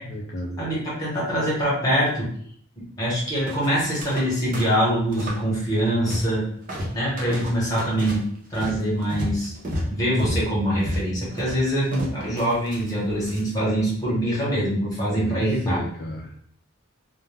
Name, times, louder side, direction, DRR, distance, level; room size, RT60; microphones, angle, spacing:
voice 1, 0.1-0.6 15.1-16.4, left 1 dB, 45° left, -2 dB, 0.3 m, -32 dB
voice 2, 0.6-2.3 3.0-6.5 6.9-8.2 8.5-9.5 9.9-15.8, equal, 15° left, -7 dB, 1.0 m, -24 dB
sound 1, 3.5-4.3 4.5-5.4 5.7-6.4 6.7-13.4, equal, 40° right, 0.6 m, -32 dB
2.2 x 2.1 x 3.2 m, 0.63 s
head